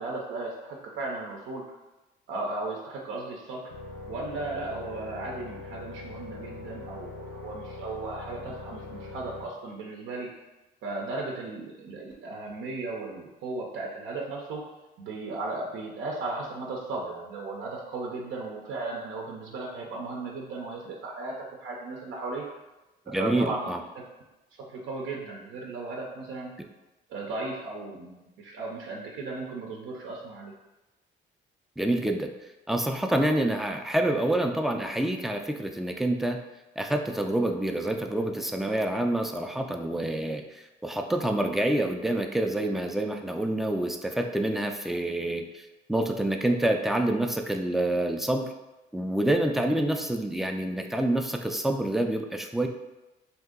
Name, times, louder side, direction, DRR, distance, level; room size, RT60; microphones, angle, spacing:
voice 1, 0.0-1.8 2.3-3.6 4.1-10.3 10.8-14.6 15.0-21.3 21.6-22.4 23.2-24.0 24.6-26.5 27.1-30.5, right 3 dB, 85° right, -1 dB, 0.6 m, -36 dB
sound 1, 3.7-9.5, left 3 dB, 85° left, 0.7 m, -42 dB
voice 2, 23.1-23.8 31.8-32.3 32.7-36.4 36.8-48.5 48.9-52.7, right 1 dB, ahead, 4 dB, 0.3 m, -27 dB
2.8 x 2.6 x 3.6 m, 1.0 s
cardioid pair, 90°, 20 cm